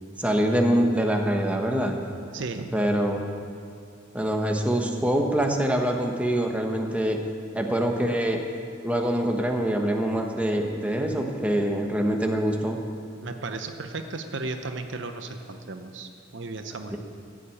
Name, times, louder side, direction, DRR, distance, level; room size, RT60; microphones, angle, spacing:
voice 1, 0.2-2.0 2.7-3.2 4.1-7.2 7.5-8.4 8.8-12.8 16.9-17.0, right 1 dB, 5° right, 2 dB, 1.1 m, -24 dB
voice 2, 2.3-2.7 13.2-17.0, right 3 dB, 65° right, 7 dB, 0.8 m, -35 dB
15.0 x 7.5 x 8.5 m, 2.5 s
head